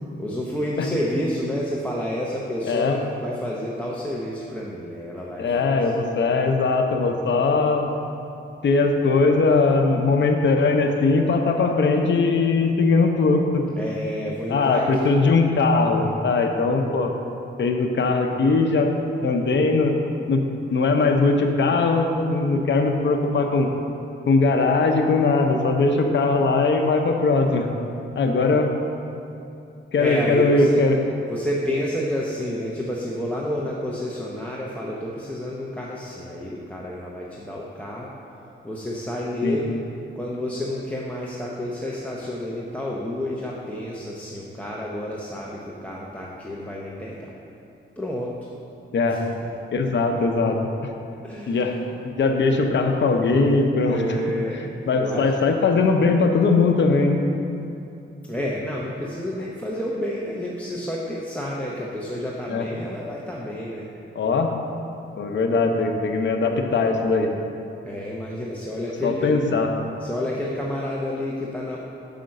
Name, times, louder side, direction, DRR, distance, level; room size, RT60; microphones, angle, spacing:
voice 1, 0.2-5.5 5.8-5.9 13.7-15.3 30.0-30.8 31.3-38.1 38.6-39.8 40.1-47.3 48.0-48.3 49.1-49.3 51.2-51.8 53.9-54.6 55.0-55.3 58.2-63.9 67.8-69.3 70.0-71.8, left 1 dB, 5° left, -4 dB, 0.7 m, -29 dB
voice 2, 2.6-3.0 5.4-7.9 8.6-13.6 14.5-17.1 17.6-18.9 19.2-19.9 20.3-20.4 20.7-23.7 24.3-27.7 28.2-28.7 29.9-31.0 39.4-39.6 48.9-49.2 49.7-50.9 51.5-51.8 52.0-54.0 54.9-57.2 62.5-62.7 64.1-64.5 65.2-67.3 69.0-69.7, left 3 dB, 60° left, 4 dB, 0.7 m, -20 dB
5.8 x 5.1 x 6.4 m, 2.8 s
cardioid pair, 100°, 21 cm